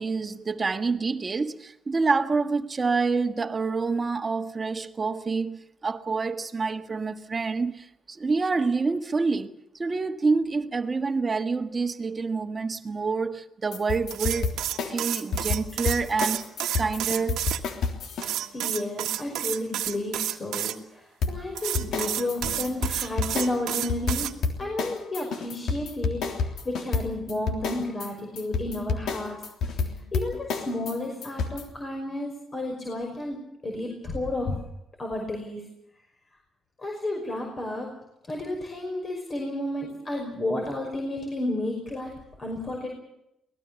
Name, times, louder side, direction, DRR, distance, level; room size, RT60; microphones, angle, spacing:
voice 1, 0.0-14.6 14.9-16.4 16.8-17.4, right 4 dB, 30° right, 1.6 m, -27 dB
sound 1, 13.7-18.3 21.2-31.6, left 4 dB, 75° left, 3.4 m, -29 dB
sound 2, 14.1-17.6 18.2-20.7 21.5-24.3, right 12 dB, 85° right, 1.6 m, -30 dB
voice 2, 18.4-24.3 24.6-34.6 35.0-35.6 36.8-38.0 38.3-42.1 42.4-42.9, left 1 dB, 35° left, 5.5 m, -32 dB
23.5 x 19.0 x 7.0 m
cardioid pair, 90°, 0 cm